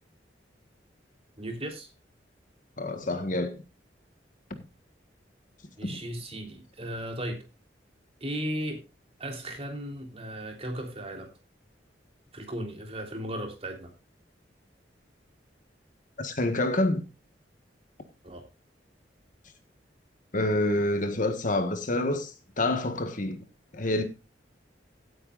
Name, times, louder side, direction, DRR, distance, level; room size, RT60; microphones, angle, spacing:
voice 1, 1.4-1.9 5.8-7.4 8.2-8.8 9.2-11.3 12.3-13.9 18.2-18.5, right 1 dB, 35° right, 3.5 m, -36 dB
voice 2, 2.8-3.6 5.8-6.0 16.2-17.0 20.3-23.4 23.7-24.0, left 1 dB, 45° left, 1.6 m, -27 dB
16.5 x 9.0 x 2.5 m
head